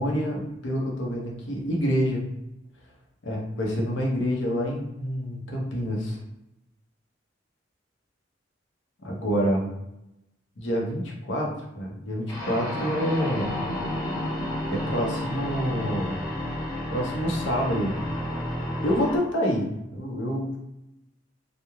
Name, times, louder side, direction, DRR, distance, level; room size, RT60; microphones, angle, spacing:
voice 1, 0.0-2.2 3.2-6.2 9.0-9.7 10.6-13.6 14.7-16.3 16.9-18.0 18.8-20.6, equal, 75° left, -1 dB, 0.7 m, -27 dB
sound 1, 12.3-19.2, left 1 dB, 20° left, 0.9 m, -31 dB
3.0 x 2.1 x 2.3 m, 0.89 s
head